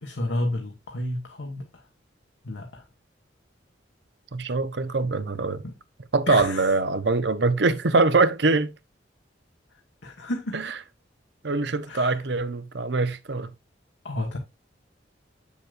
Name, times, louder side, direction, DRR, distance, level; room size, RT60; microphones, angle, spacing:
voice 1, 0.0-1.8 2.4-2.8 5.6-5.7 6.3-6.7 10.0-10.6 11.9-12.2 14.0-14.4, left 1 dB, 75° left, 1.5 m, -31 dB
voice 2, 4.3-5.6 6.1-8.7 10.5-10.6 11.4-13.5, right 3 dB, 65° right, 0.8 m, -23 dB
8.2 x 7.1 x 2.5 m
head